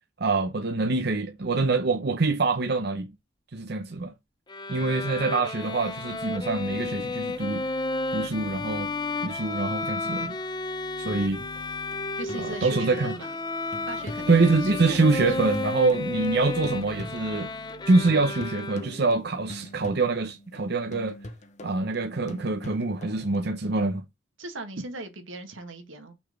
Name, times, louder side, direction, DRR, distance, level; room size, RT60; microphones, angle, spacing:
voice 1, 0.2-3.1 3.5-4.1 4.7-7.7 8.1-8.9 9.2-10.4 11.0-11.4 12.4-13.1 14.3-17.5 17.9-21.2 21.6-24.0, right 3 dB, 55° right, 0.8 m, -25 dB
Bowed string instrument, 4.5-19.1, left 3 dB, 20° left, 0.6 m, -32 dB
sound 1, 5.6-18.6 18.9-19.9, left 3 dB, 70° left, 1.9 m, -48 dB
sound 2, 11.5-17.8 18.1-23.5, left 1 dB, 40° left, 1.0 m, -43 dB
voice 2, 12.2-13.3 13.9-15.4 24.4-26.1, right 2 dB, 85° right, 1.7 m, -39 dB
6.0 x 4.1 x 5.1 m
head